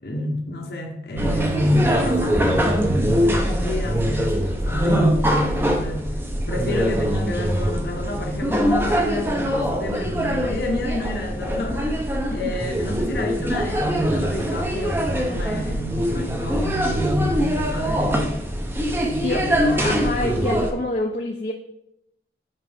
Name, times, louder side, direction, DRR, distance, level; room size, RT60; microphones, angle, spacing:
voice 1, 0.0-6.2 6.5-18.3 19.1-19.9, left 1 dB, 60° left, 1 dB, 0.9 m, -29 dB
sound 1, 1.2-20.7, equal, 10° right, 0.6 m, -23 dB
voice 2, 19.8-21.5, left 2 dB, 40° left, 1 dB, 0.5 m, -26 dB
7.5 x 5.0 x 3.4 m, 0.79 s
head